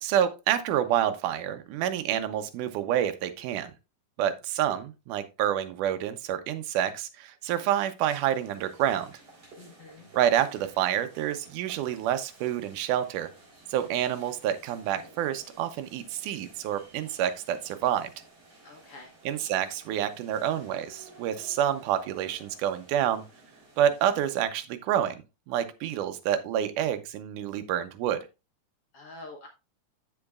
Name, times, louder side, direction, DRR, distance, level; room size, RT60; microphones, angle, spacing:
voice 1, 0.0-3.7 4.2-9.1 10.2-13.3 13.7-18.1 19.3-23.2 23.8-25.2 25.5-28.2, right 10 dB, 80° right, 9 dB, 2.3 m, -28 dB
sound 1, 8.0-24.5, right 2 dB, 40° right, 4.7 m, -54 dB
voice 2, 9.6-10.1 18.6-19.1 28.9-29.5, left 2 dB, 60° left, 2 dB, 1.8 m, -46 dB
14.0 x 4.8 x 2.3 m, 0.27 s
omnidirectional pair, 3.6 m